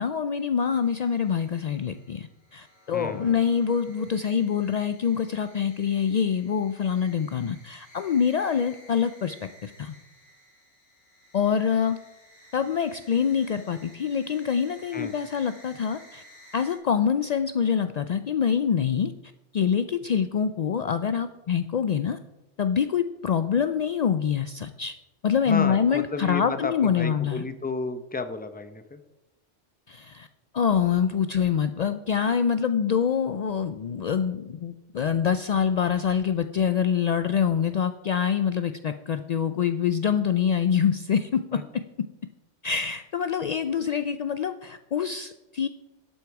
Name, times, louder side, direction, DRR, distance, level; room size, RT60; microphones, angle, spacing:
voice 1, 0.0-10.0 11.3-12.0 12.5-16.2 16.5-19.1 19.5-22.2 22.6-24.9 25.2-27.4 29.9-30.3 30.5-41.8 42.6-45.7, left 7 dB, 75° left, 10 dB, 0.3 m, -25 dB
sound 1, 0.8-16.8, equal, 90° left, 3.3 m, -54 dB
voice 2, 2.9-3.4 14.9-15.1 25.5-29.0 41.5-41.6, left 3 dB, 10° left, 9 dB, 0.5 m, -32 dB
11.5 x 8.1 x 4.7 m, 1.0 s
omnidirectional pair, 1.2 m